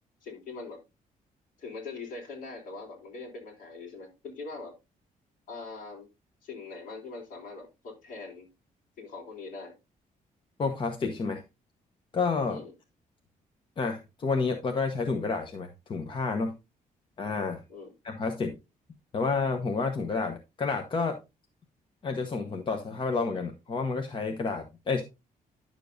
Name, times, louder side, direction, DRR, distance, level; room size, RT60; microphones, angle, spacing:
voice 1, 0.2-0.8 1.6-4.7 5.5-6.1 6.4-8.5 9.0-9.7 12.5-12.7 17.7-17.9, left 3 dB, 65° left, 0 dB, 3.7 m, -42 dB
voice 2, 10.6-11.4 12.1-12.6 13.8-16.5 17.2-17.6 18.0-18.5 19.1-21.2 22.0-25.0, left 4 dB, 35° left, 5 dB, 1.0 m, -30 dB
10.5 x 6.8 x 2.6 m, 0.24 s
cardioid pair, 160°, 15 cm